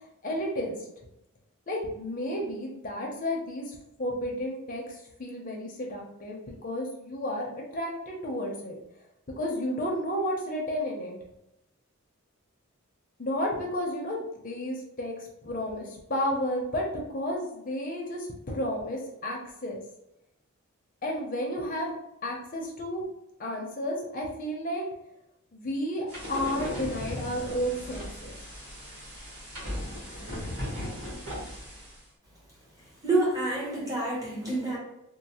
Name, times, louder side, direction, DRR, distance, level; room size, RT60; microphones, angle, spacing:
voice 1, 0.2-0.8 1.7-8.7 9.4-11.2 13.2-16.9 17.1-19.8 21.0-21.9 22.2-23.0 23.4-24.9 25.5-28.4, left 1 dB, 35° left, -1 dB, 0.6 m, -32 dB
sound 1, 26.1-32.0, equal, 70° right, 1.4 m, -37 dB
voice 2, 33.0-34.8, right 2 dB, 15° right, -5 dB, 0.8 m, -27 dB
3.1 x 2.0 x 2.8 m, 0.84 s
head